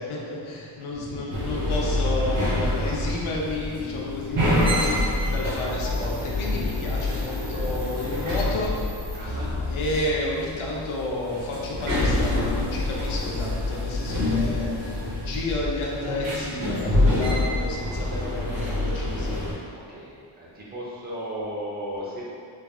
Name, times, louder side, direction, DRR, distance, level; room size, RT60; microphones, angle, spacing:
voice 1, 0.0-8.8 9.2-9.4 9.7-19.4, left 1 dB, 75° left, -3 dB, 0.8 m, -31 dB
sound 1, 1.3-19.5, left 1 dB, 75° right, 1.2 m, -26 dB
voice 2, 9.1-9.7 19.7-22.2, equal, 20° right, -7 dB, 0.6 m, -35 dB
Bowed string instrument, 9.2-13.6, left 2 dB, 25° left, 0.6 m, -40 dB
3.4 x 3.3 x 2.4 m, 2.3 s
wide cardioid pair, 165°, 49 cm